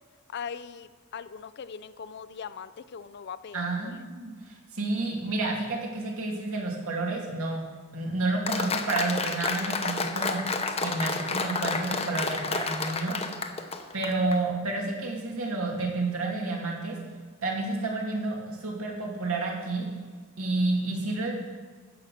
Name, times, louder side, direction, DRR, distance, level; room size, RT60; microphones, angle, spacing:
voice 1, 0.3-4.0, left 6 dB, 50° left, 14 dB, 0.4 m, -40 dB
voice 2, 3.5-7.6 7.9-10.4 10.8-13.2 13.9-17.0 17.4-19.9 20.4-21.3, right 2 dB, 70° right, -2 dB, 2.6 m, -30 dB
Applause, 8.5-14.4, left 4 dB, 25° left, 0.8 m, -30 dB
15.5 x 5.8 x 6.6 m, 1.5 s
head